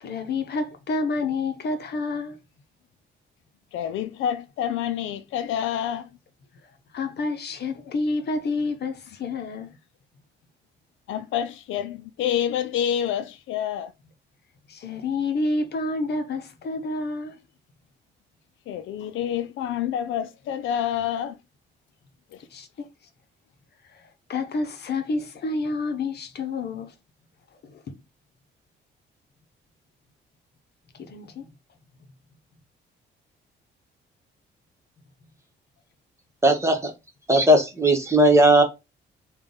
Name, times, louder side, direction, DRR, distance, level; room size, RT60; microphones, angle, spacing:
voice 1, 0.0-2.4 6.9-9.7 14.7-17.3 22.5-22.9 24.3-26.9 27.7-27.8 31.0-31.5, left 3 dB, 55° left, 0.8 m, -29 dB
voice 2, 3.7-6.1 11.1-13.9 18.7-21.3, left 10 dB, 80° left, 0.5 m, -28 dB
voice 3, 36.4-36.9 37.3-38.6, right 1 dB, 15° right, 1.2 m, -17 dB
3.5 x 2.3 x 3.8 m
cardioid pair, 90°, 20 cm